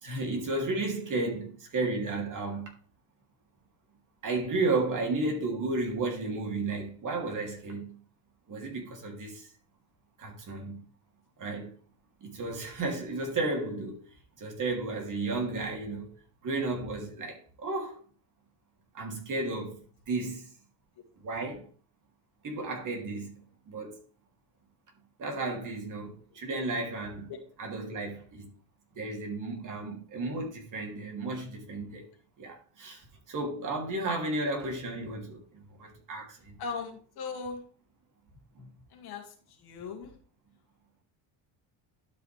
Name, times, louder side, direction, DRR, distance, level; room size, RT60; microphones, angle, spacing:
voice 1, 0.0-2.7 4.2-8.0 8.5-9.5 10.2-10.8 11.4-11.7 12.2-16.1 16.4-18.0 18.9-19.8 20.1-20.5 21.2-21.7 22.4-23.3 23.7-24.0 25.2-27.3 27.6-28.5 28.9-32.1 32.4-36.5 38.5-38.7, right 2 dB, 45° right, 3.1 m, -33 dB
voice 2, 36.6-37.6 38.9-39.2 39.6-40.1, left 5 dB, 60° left, 2.5 m, -38 dB
11.5 x 5.6 x 3.4 m
cardioid pair, 115°, 43 cm